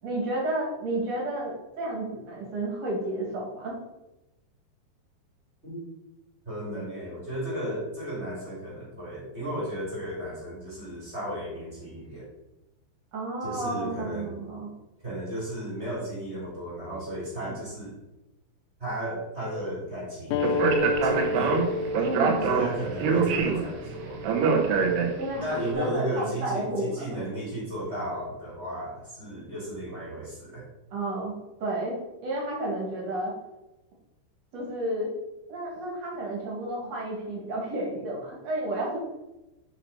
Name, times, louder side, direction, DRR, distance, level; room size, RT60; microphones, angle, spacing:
voice 1, 0.0-3.7 13.1-14.7 22.0-22.5 25.2-27.1 30.9-32.0 32.2-33.3 34.5-35.1 35.5-39.0, right 1 dB, 40° right, -2 dB, 3.0 m, -31 dB
voice 2, 6.4-12.3 13.4-14.4 15.0-18.0 18.8-21.8 22.4-24.2 25.4-30.7, right 1 dB, 15° right, -5 dB, 2.8 m, -34 dB
sound 1, 20.3-25.4, left 3 dB, 80° left, 2.8 m, -32 dB
Speech, 20.4-25.5, right 5 dB, 70° right, 2.9 m, -25 dB
10.5 x 6.0 x 4.3 m, 0.96 s
omnidirectional pair, 5.3 m